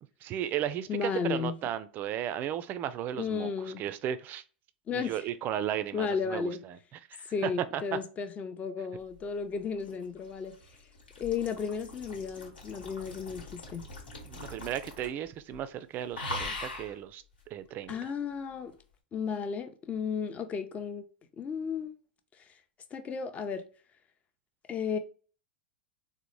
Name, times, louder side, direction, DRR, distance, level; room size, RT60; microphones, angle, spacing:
voice 1, 0.2-3.5 3.8-4.4 4.9-6.8 7.1-8.0 14.2-17.2 17.5-18.1, right 10 dB, 40° right, 0.4 m, -35 dB
voice 2, 0.9-1.6 3.2-3.9 4.9-5.2 5.9-6.6 7.3-10.5 11.2-13.8 17.9-18.8 19.1-21.1 21.4-21.9 22.9-23.6 24.7-25.0, left 6 dB, 25° left, 0.5 m, -34 dB
sound 1, 9.5-15.3 15.5-15.8 16.1-17.0 17.9-18.0, left 2 dB, 85° left, 1.2 m, -41 dB
3.8 x 2.1 x 3.0 m
hypercardioid pair, 100°, 5 cm